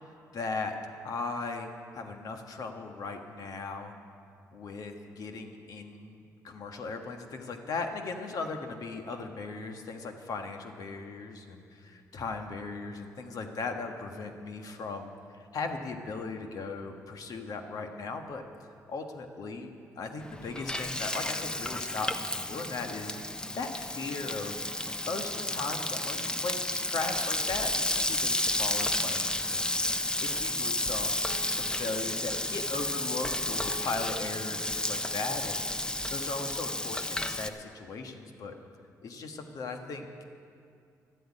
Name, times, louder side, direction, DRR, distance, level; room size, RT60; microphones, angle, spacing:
voice 1, 0.3-0.8 1.0-3.9 4.5-18.4 18.9-19.7 20.0-24.6 25.1-29.7 30.2-38.5 39.0-40.1, left 3 dB, 65° left, 5 dB, 1.4 m, -38 dB
Frying (food), 20.2-37.5, left 1 dB, 10° left, 0.6 m, -32 dB
12.5 x 8.0 x 10.0 m, 2.3 s
cardioid pair, 100°, 7 cm